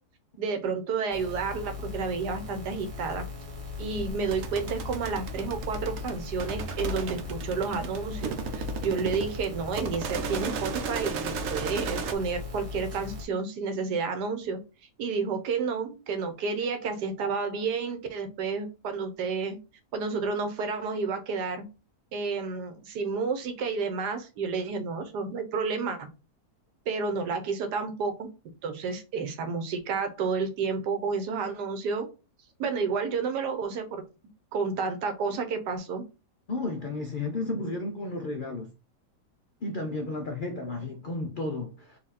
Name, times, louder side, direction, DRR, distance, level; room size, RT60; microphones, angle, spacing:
voice 1, 0.4-3.2 3.8-14.6 15.0-19.6 19.9-21.6 22.1-26.1 26.9-28.3 28.6-32.1 32.6-34.0 34.5-36.0 37.7-37.8, right 5 dB, 80° right, 1.4 m, -30 dB
sound 1, 1.1-13.2, left 4 dB, 25° right, 1.0 m, -38 dB
sound 2, 4.2-12.1, right 5 dB, 60° right, 0.9 m, -36 dB
voice 2, 36.5-38.7 39.6-42.0, left 2 dB, 75° left, 0.4 m, -33 dB
4.2 x 2.7 x 4.0 m
omnidirectional pair, 1.8 m